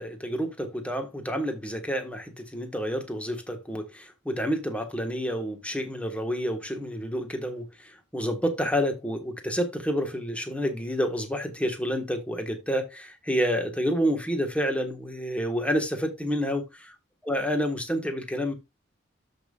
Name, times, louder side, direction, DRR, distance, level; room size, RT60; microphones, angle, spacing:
voice 1, 0.0-16.6 17.2-18.5, equal, 5° left, 1.5 m, -29 dB
13.0 x 5.4 x 2.4 m
head